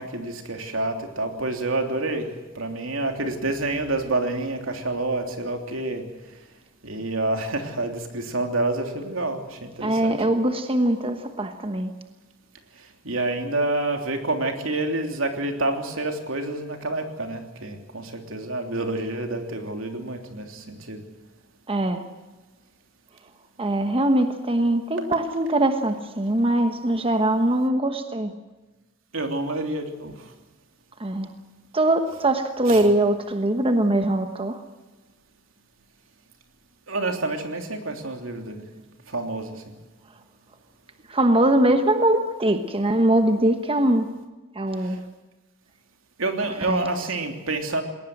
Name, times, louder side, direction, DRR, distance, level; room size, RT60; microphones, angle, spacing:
voice 1, 0.0-2.3 2.5-6.0 6.8-10.1 13.0-21.0 29.1-30.1 32.7-32.8 36.9-38.6 39.1-39.6 46.2-47.8, right 2 dB, 80° right, 4 dB, 3.2 m, -28 dB
voice 2, 9.8-11.9 21.7-22.0 23.6-28.3 31.0-31.3 31.7-34.6 41.1-44.1 44.5-45.0 46.6-46.9, right 1 dB, 30° right, 7 dB, 1.2 m, -22 dB
20.5 x 19.0 x 7.9 m, 1.2 s
head